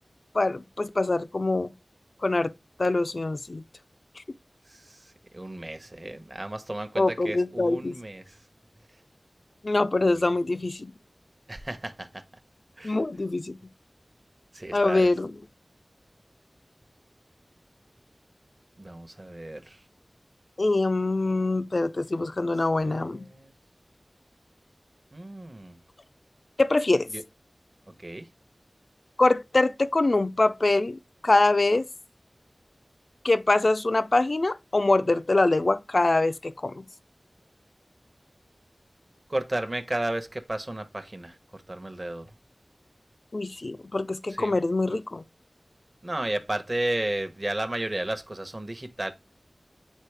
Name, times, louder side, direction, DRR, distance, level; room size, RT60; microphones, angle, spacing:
voice 1, 0.3-1.7 2.2-2.5 2.8-3.6 4.2-4.3 7.0-8.0 9.6-10.9 12.8-13.6 14.7-15.3 20.6-23.3 26.6-27.1 29.2-31.9 33.2-36.8 43.3-45.2, left 2 dB, 60° left, 0.4 m, -24 dB
voice 2, 5.3-8.3 11.5-12.2 12.8-13.0 14.5-15.1 18.8-19.8 22.8-23.5 25.1-25.8 27.1-27.2 28.0-28.2 39.3-42.3 44.3-44.5 46.0-49.1, right 1 dB, 40° right, 0.9 m, -33 dB
8.3 x 4.1 x 3.3 m
wide cardioid pair, 50°, 0 cm